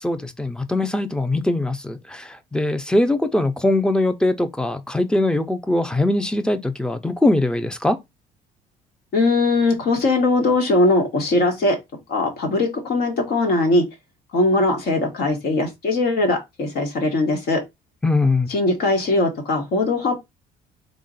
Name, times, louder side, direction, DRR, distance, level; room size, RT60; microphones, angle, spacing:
voice 1, 0.0-8.0 18.0-18.5, left 2 dB, 5° left, 0.5 m, -21 dB
voice 2, 9.1-11.8 12.1-13.8 14.3-17.6 18.5-20.2, left 2 dB, 70° left, 1.6 m, -20 dB
3.8 x 2.5 x 3.9 m
cardioid pair, 110°, 17 cm